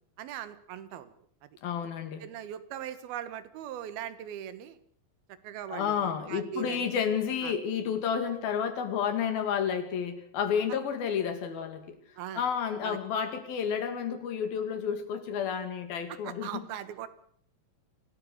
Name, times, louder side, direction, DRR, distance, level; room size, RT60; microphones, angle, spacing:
voice 1, 0.2-1.1 2.2-4.8 5.4-6.9 7.4-7.5 12.2-12.4 12.8-13.0 16.1-17.1, right 10 dB, 85° right, 14 dB, 3.2 m, -40 dB
voice 2, 1.6-2.3 5.7-12.0 12.4-16.6, left 7 dB, 80° left, 8 dB, 4.1 m, -31 dB
26.0 x 17.5 x 6.6 m, 0.62 s
omnidirectional pair, 4.2 m